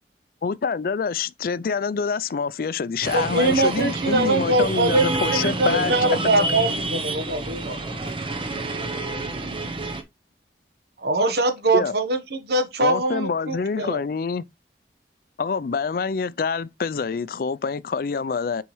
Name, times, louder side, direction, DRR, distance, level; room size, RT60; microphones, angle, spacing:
voice 1, 0.4-6.0 11.7-11.9 12.8-14.4 15.4-18.6, left 5 dB, 55° left, 0.4 m, -26 dB
sound 1, 3.0-10.0, right 2 dB, 30° right, 0.7 m, -29 dB
voice 2, 3.1-7.8 11.0-14.0, right 2 dB, 65° right, 1.1 m, -22 dB
voice 3, 5.7-8.4 8.7-9.7, equal, 5° left, 1.8 m, -40 dB
7.0 x 4.6 x 3.1 m
head